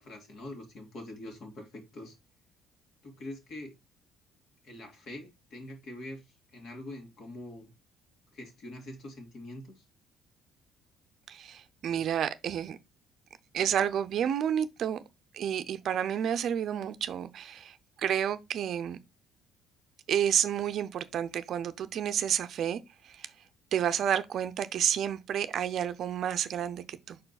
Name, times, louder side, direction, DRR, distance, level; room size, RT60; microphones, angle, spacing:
voice 1, 0.0-2.2 3.0-3.8 4.6-7.7 8.3-9.8, left 1 dB, 50° left, 2.4 m, -44 dB
voice 2, 11.3-12.8 13.5-15.0 15.3-19.0 20.1-23.3 23.7-27.2, right 9 dB, 55° right, 0.6 m, -30 dB
5.1 x 4.5 x 4.1 m
cardioid pair, 135°, 0 cm